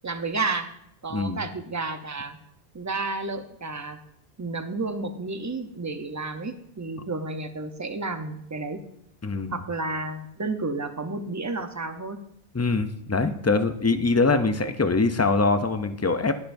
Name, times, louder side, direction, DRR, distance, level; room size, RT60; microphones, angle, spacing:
voice 1, 0.0-0.7 1.0-2.4 2.7-4.0 4.4-8.8 9.5-12.2, right 3 dB, 20° right, 7 dB, 0.6 m, -31 dB
voice 2, 1.1-1.4 9.2-9.6 12.5-16.4, left 3 dB, 25° left, 9 dB, 0.3 m, -23 dB
20.5 x 6.9 x 2.6 m, 0.76 s
omnidirectional pair, 1.1 m